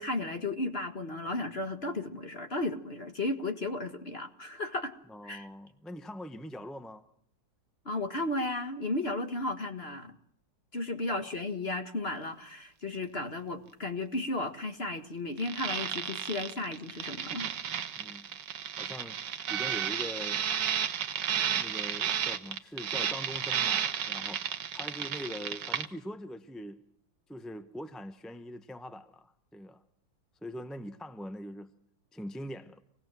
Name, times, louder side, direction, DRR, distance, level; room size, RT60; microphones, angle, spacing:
voice 1, 0.0-4.9 5.2-5.5 7.8-10.2 10.7-17.5, left 2 dB, 35° left, 1.7 m, -34 dB
voice 2, 5.1-7.1 11.2-11.3 17.9-18.4 18.8-19.2 19.5-20.4 21.3-26.8 27.3-29.8 30.4-31.7 32.1-32.8, equal, ahead, 0.5 m, -43 dB
sound 1, 15.4-25.9, right 9 dB, 65° right, 1.7 m, -33 dB
26.5 x 18.0 x 7.6 m
omnidirectional pair, 2.1 m